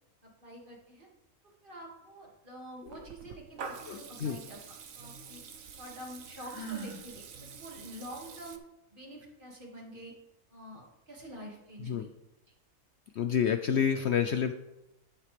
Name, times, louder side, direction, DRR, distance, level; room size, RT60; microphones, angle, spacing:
voice 1, 0.2-1.1 1.6-4.6 5.0-5.4 5.8-8.6 8.9-10.1 10.5-12.1, right 1 dB, 35° right, -1 dB, 2.5 m, -47 dB
Water tap faucet / Liquid, 2.8-8.6, right 5 dB, 70° right, 1.3 m, -47 dB
voice 2, 3.9-4.4 11.8-12.1 13.1-14.5, left 8 dB, 60° left, 8 dB, 0.8 m, -29 dB
Sigh, 6.4-7.0, right 4 dB, 75° left, 3.4 m, -40 dB
11.5 x 10.5 x 3.4 m, 0.92 s
omnidirectional pair, 1.5 m